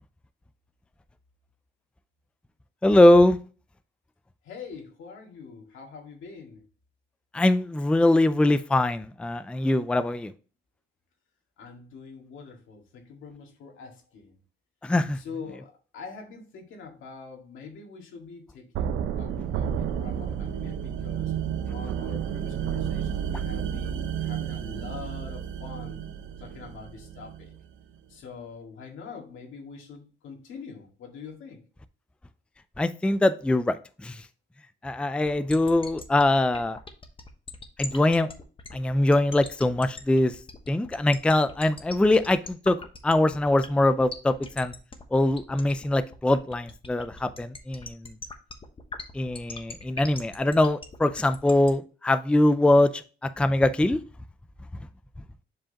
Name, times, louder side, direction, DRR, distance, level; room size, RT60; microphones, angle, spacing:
voice 1, 2.8-3.4 7.3-10.3 14.8-15.2 32.8-33.8 34.0-34.2 34.8-36.8 37.8-38.3 38.7-40.3 40.7-42.8 43.0-44.7 45.1-48.0 49.1-53.0 53.4-54.0, left 1 dB, 5° left, 12 dB, 0.4 m, -22 dB
voice 2, 4.4-6.6 11.6-14.4 15.1-21.3 21.7-26.0 26.4-27.5 28.1-31.6, left 5 dB, 80° left, 2 dB, 2.0 m, -44 dB
sound 1, 18.7-27.6, right 8 dB, 85° right, 0.7 m, -31 dB
sound 2, 35.2-51.7, left 3 dB, 25° left, 1.1 m, -40 dB
7.5 x 4.8 x 2.9 m, 0.37 s
cardioid pair, 90°, 20 cm